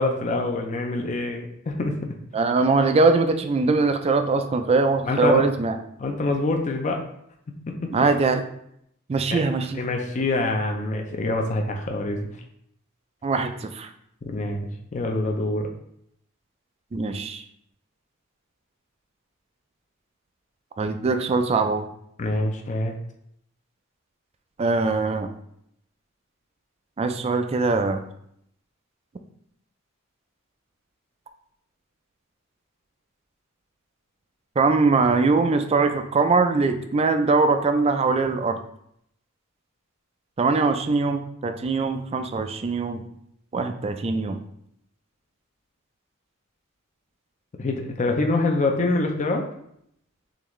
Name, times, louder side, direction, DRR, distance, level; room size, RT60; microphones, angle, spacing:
voice 1, 0.0-1.9 5.0-5.4 6.0-7.0 7.7-7.8 9.3-9.4 9.7-12.3 14.2-15.7 22.2-22.9 47.6-49.4, left 2 dB, 35° left, 2 dB, 0.4 m, -25 dB
voice 2, 2.3-5.8 7.9-8.4 9.1-9.8 13.2-13.9 16.9-17.4 20.8-21.9 24.6-25.3 27.0-28.0 34.6-38.6 40.4-43.0 43.5-44.4, right 3 dB, 30° right, 7 dB, 0.3 m, -22 dB
3.8 x 3.3 x 3.1 m, 0.72 s
head